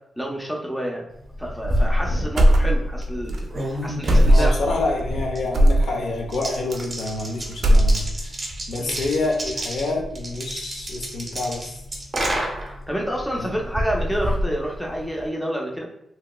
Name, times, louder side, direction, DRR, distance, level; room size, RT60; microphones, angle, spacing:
voice 1, 0.2-1.0 1.4-4.8 8.8-9.0 12.9-15.9, equal, 5° left, -1 dB, 0.4 m, -28 dB
sound 1, 1.2-15.3, equal, 30° right, 0.7 m, -29 dB
sound 2, 2.4-3.0 3.3-3.4 4.1-4.7 5.5-5.9 6.7-7.3 7.5-8.3, equal, 65° right, 0.4 m, -16 dB
voice 2, 4.2-8.0 8.7-11.7 13.4-13.5, left 2 dB, 75° left, 0 dB, 0.6 m, -27 dB
2.9 x 2.7 x 2.2 m, 0.78 s
wide cardioid pair, 130°, 0 cm